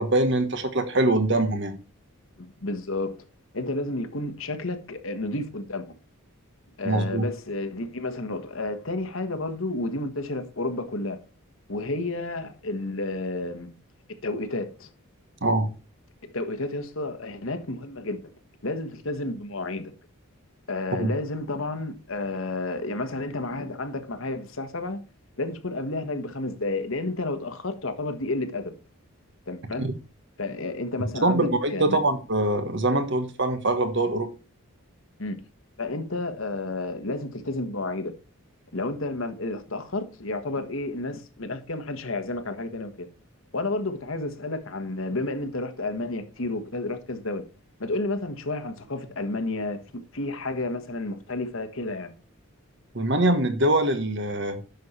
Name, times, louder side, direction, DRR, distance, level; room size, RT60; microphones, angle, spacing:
voice 1, 0.0-1.7 6.8-7.3 15.4-15.7 21.0-21.1 29.8-29.9 31.2-34.3 52.9-54.6, right 2 dB, 55° right, 1.6 m, -23 dB
voice 2, 2.4-3.1 3.5-5.9 6.8-11.2 11.7-13.7 14.2-14.9 16.2-18.2 18.6-19.9 20.7-25.0 25.4-28.7 29.5-29.9 30.4-32.0 35.2-35.4 35.8-38.1 38.7-43.1 43.5-47.4 47.8-49.8 50.1-52.1, left 2 dB, 65° left, 1.4 m, -31 dB
10.5 x 6.6 x 4.4 m
head